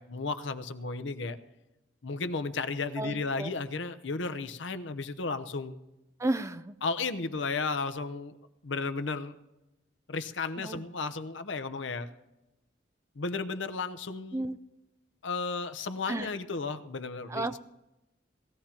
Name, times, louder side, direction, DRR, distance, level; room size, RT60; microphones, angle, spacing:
voice 1, 0.0-1.4 2.0-5.8 6.8-8.4 8.6-9.3 10.1-12.1 13.2-14.4 15.2-17.6, left 4 dB, 75° left, 11 dB, 0.8 m, -34 dB
voice 2, 3.0-3.5 6.2-6.7 10.6-10.8 14.3-14.6 16.1-16.3 17.3-17.6, right 2 dB, 15° right, 11 dB, 0.4 m, -33 dB
19.5 x 14.5 x 2.9 m, 0.96 s
head